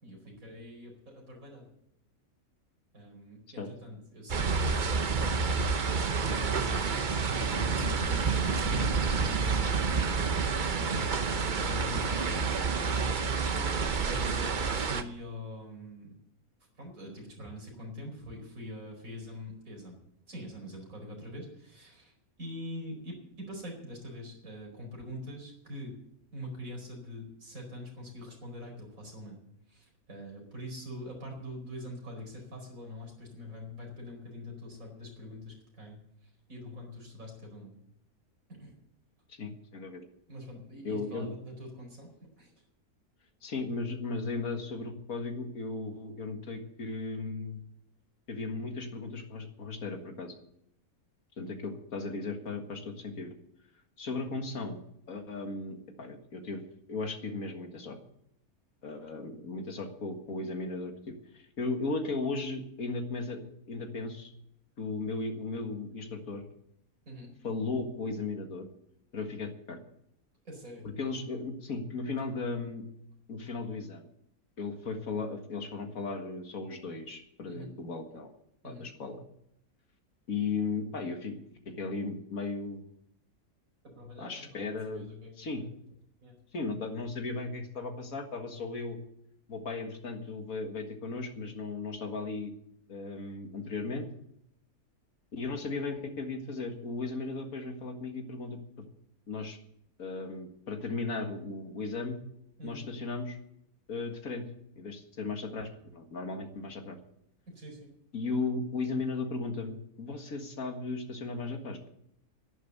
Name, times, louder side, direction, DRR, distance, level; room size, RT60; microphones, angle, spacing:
voice 1, 0.0-1.7 2.9-5.4 6.0-10.2 10.7-13.8 14.0-16.1 16.8-20.0 20.3-26.0 26.3-29.4 29.7-37.8 38.5-38.7 40.3-42.5 67.0-67.3 70.4-70.9 77.5-77.7 78.6-78.9 83.8-85.7 86.2-86.4 102.6-102.9 107.5-107.9, left 1 dB, 65° right, 1 dB, 5.1 m, -44 dB
sound 1, 4.3-15.0, right 5 dB, 40° right, 0.8 m, -29 dB
voice 2, 39.3-40.1 40.8-41.3 43.4-47.6 48.3-50.3 51.4-53.3 54.0-54.8 55.1-58.0 58.8-64.3 64.8-66.4 67.4-68.7 69.1-69.8 70.8-72.8 73.3-74.0 74.6-78.3 78.6-79.2 80.3-82.8 84.2-85.1 85.4-85.6 86.5-89.0 89.5-92.5 92.9-94.1 95.3-98.6 99.3-99.6 100.0-102.2 102.6-103.4 103.9-104.5 104.8-107.0 108.1-111.9, left 3 dB, 65° left, 5 dB, 2.1 m, -36 dB
11.0 x 11.0 x 8.1 m, 0.75 s
omnidirectional pair, 1.6 m